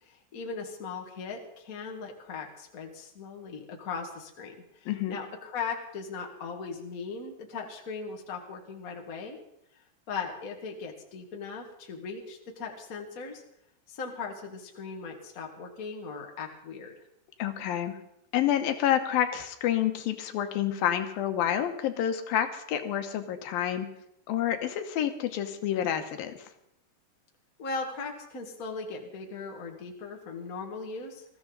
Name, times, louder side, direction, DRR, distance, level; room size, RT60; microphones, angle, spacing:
voice 1, 0.0-9.4 10.1-13.4 13.9-16.9 27.6-31.2, left 5 dB, 35° left, 2 dB, 1.6 m, -38 dB
voice 2, 4.9-5.2 17.4-18.0 18.3-23.9 24.3-26.4, left 10 dB, 80° left, 7 dB, 2.9 m, -28 dB
21.0 x 14.5 x 4.0 m, 0.77 s
omnidirectional pair, 4.1 m